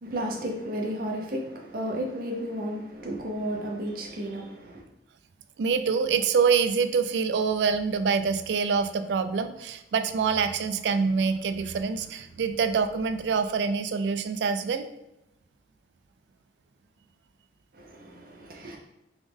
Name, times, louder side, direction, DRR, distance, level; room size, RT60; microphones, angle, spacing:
voice 1, 0.0-4.8 17.7-18.8, equal, 55° right, 0 dB, 0.7 m, -33 dB
voice 2, 5.6-14.9, right 5 dB, 75° right, 10 dB, 0.3 m, -25 dB
3.5 x 3.0 x 3.5 m, 0.88 s
head